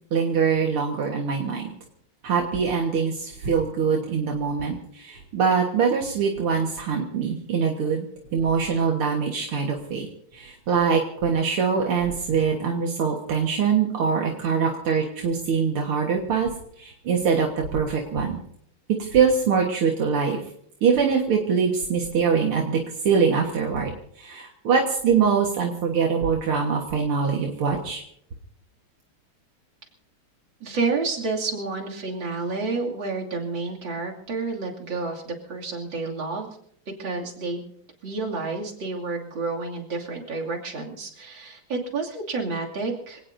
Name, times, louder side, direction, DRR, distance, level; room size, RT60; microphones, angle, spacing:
voice 1, 0.1-1.7 2.2-8.1 8.3-10.1 10.3-16.5 16.8-18.4 18.9-20.4 20.8-28.0, right 6 dB, 80° right, 1 dB, 2.4 m, -23 dB
voice 2, 30.6-36.5 37.0-37.7 38.0-43.2, right 3 dB, 60° right, -1 dB, 3.3 m, -30 dB
26.0 x 18.0 x 2.7 m, 0.70 s
omnidirectional pair, 2.4 m